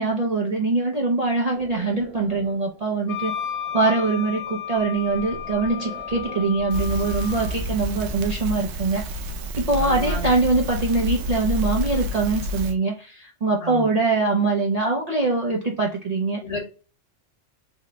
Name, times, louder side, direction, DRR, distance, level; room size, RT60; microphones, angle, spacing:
voice 1, 0.0-3.3 3.7-9.0 9.6-16.4, right 3 dB, 45° right, -2 dB, 0.5 m, -23 dB
sound 1, 1.5-6.7, right 1 dB, ahead, 0.7 m, -44 dB
Wind instrument woodwind instrument, 3.1-7.6, left 9 dB, 75° left, 1.1 m, -33 dB
Crackle, 6.7-12.7, left 1 dB, 70° right, 0.8 m, -29 dB
voice 2, 9.8-10.3 13.6-13.9 16.4-16.6, left 1 dB, 55° left, -1 dB, 1.4 m, -31 dB
3.6 x 2.1 x 3.6 m, 0.34 s
omnidirectional pair, 1.3 m